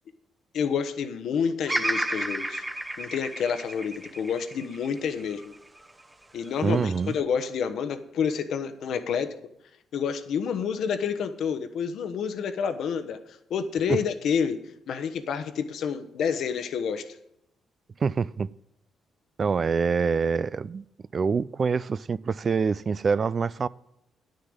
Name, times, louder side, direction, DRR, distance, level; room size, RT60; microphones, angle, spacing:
voice 1, 0.5-2.6 3.0-5.5 6.3-9.3 9.9-13.2 13.5-14.6 14.9-17.1, left 7 dB, 70° left, 1.0 m, -29 dB
Bird vocalization bird call bird song, 1.7-5.9 6.4-7.2, right 1 dB, 10° right, 0.9 m, -32 dB
voice 2, 6.6-7.2 13.9-14.0 18.0-18.5 19.4-20.8 21.1-23.7, right 5 dB, 40° right, 0.3 m, -25 dB
9.8 x 6.6 x 8.8 m
cardioid pair, 90°, 0 cm